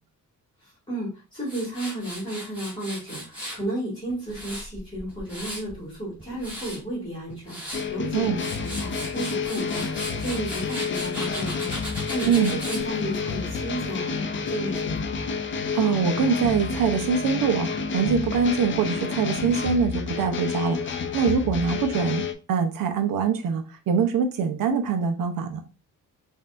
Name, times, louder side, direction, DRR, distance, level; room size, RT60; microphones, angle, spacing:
voice 1, 0.6-15.1, right 1 dB, 15° left, 2.3 m, -33 dB
Tools, 1.5-3.6 4.1-5.7 6.2-6.8 7.3-7.8 8.2-12.8, equal, 5° right, 1.8 m, -37 dB
sound 1, 7.7-22.3, left 5 dB, 35° left, 0.4 m, -29 dB
voice 2, 15.7-25.6, right 6 dB, 70° right, 0.8 m, -24 dB
5.4 x 2.8 x 2.5 m
wide cardioid pair, 170°, 34 cm